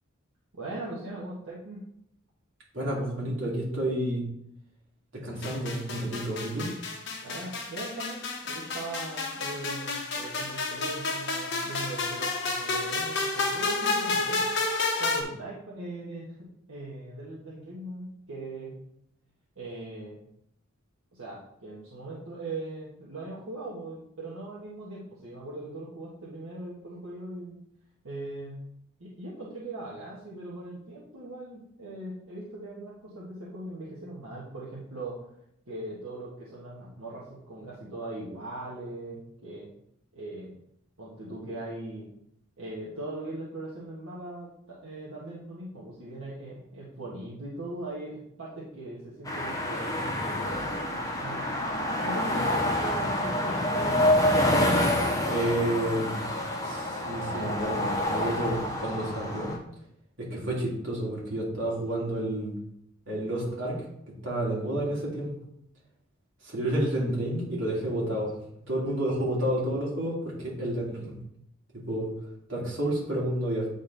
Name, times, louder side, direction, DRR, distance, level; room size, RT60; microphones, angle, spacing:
voice 1, 0.5-1.8 7.2-14.5 15.0-18.8 19.5-20.1 21.1-27.6 28.0-28.6 29.0-35.2 35.7-39.7 40.1-40.6 41.0-42.1 42.6-51.5 52.0-54.2, right 2 dB, 75° right, -7 dB, 1.5 m, -40 dB
voice 2, 2.7-4.2 5.1-6.7 55.2-56.3 56.6-59.5 60.2-62.5 63.1-63.8 64.2-65.3 66.4-68.3 68.7-71.2 71.7-72.1 72.5-73.7, right 1 dB, 60° right, -5 dB, 2.7 m, -30 dB
sound 1, 5.4-15.2, left 3 dB, 50° left, 1.2 m, -30 dB
sound 2, 49.3-59.6, left 1 dB, 15° left, 0.8 m, -27 dB
8.4 x 4.1 x 4.0 m, 0.74 s
head